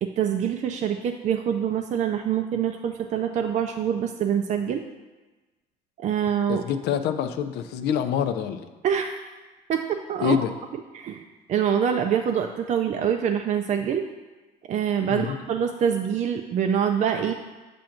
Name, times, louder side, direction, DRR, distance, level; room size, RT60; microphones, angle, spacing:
voice 1, 0.0-4.8 6.0-6.6 8.8-9.2 9.7-10.5 10.9-14.1 14.7-17.3, right 8 dB, 45° right, 5 dB, 0.4 m, -25 dB
voice 2, 6.5-8.6 10.2-10.5 15.1-15.4, left 9 dB, 80° left, 9 dB, 0.4 m, -26 dB
7.5 x 2.6 x 5.8 m, 1.2 s
cardioid pair, 110°, 17 cm